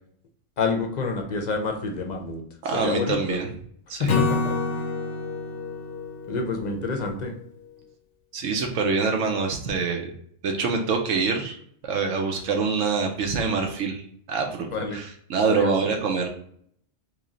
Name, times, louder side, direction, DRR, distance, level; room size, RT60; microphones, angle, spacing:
voice 1, 0.6-2.4 2.7-3.4 4.0-4.8 6.3-7.3 14.6-15.0 15.4-15.7, left 4 dB, 45° left, 3 dB, 0.6 m, -28 dB
voice 2, 2.6-3.5 3.9-4.2 8.3-10.1 10.4-11.6 11.8-16.3, right 4 dB, 85° right, 2 dB, 1.0 m, -25 dB
Acoustic guitar / Strum, 4.1-7.4, left 5 dB, 75° left, 0.9 m, -28 dB
3.1 x 3.0 x 3.7 m, 0.66 s
omnidirectional pair, 1.3 m